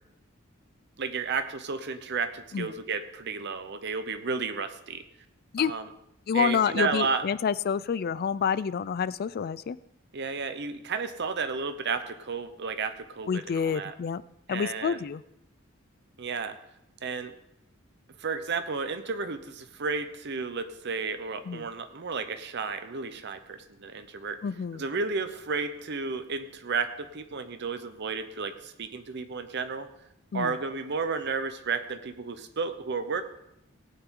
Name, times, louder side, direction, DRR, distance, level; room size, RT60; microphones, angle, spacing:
voice 1, 1.0-5.0 5.6-5.9 6.3-7.3 10.1-13.9 14.5-15.0 16.2-16.6 17.0-17.3 18.2-24.4 24.7-29.9 30.3-33.2, right 4 dB, 55° right, 9 dB, 0.8 m, -32 dB
voice 2, 6.3-9.8 13.3-14.2 14.5-15.2 21.5-21.7 24.4-24.8 30.3-30.5, left 7 dB, 50° left, 17 dB, 0.3 m, -28 dB
18.0 x 8.8 x 3.8 m, 0.82 s
head